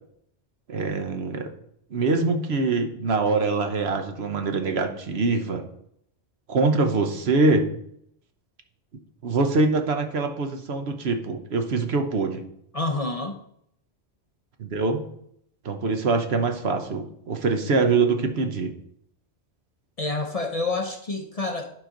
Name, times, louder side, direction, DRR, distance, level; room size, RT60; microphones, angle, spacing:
voice 1, 0.7-1.5 1.9-5.6 6.5-7.7 9.2-12.5 14.6-15.0 15.6-18.7, right 3 dB, 70° right, 6 dB, 1.2 m, -24 dB
voice 2, 12.7-13.4 20.0-21.7, left 2 dB, 40° left, 5 dB, 0.6 m, -28 dB
11.0 x 4.9 x 3.8 m, 0.71 s
omnidirectional pair, 1.1 m